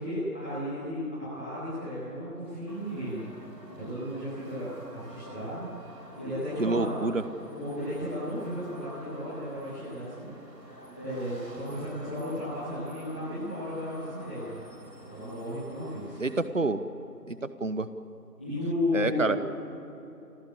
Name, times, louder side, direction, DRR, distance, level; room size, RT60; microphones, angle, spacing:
voice 1, 0.0-3.1 3.7-6.9 7.5-10.2 10.6-14.5 15.0-16.1 18.4-19.4, left 1 dB, 5° left, -13 dB, 2.3 m, -34 dB
sound 1, 2.7-16.5, right 1 dB, 80° right, 6.2 m, -49 dB
voice 2, 6.6-7.2 16.2-16.8 17.3-17.9 18.9-19.4, right 3 dB, 50° right, 12 dB, 1.2 m, -27 dB
30.0 x 15.0 x 9.8 m, 3.0 s
figure-of-eight pair, 170°, 48 cm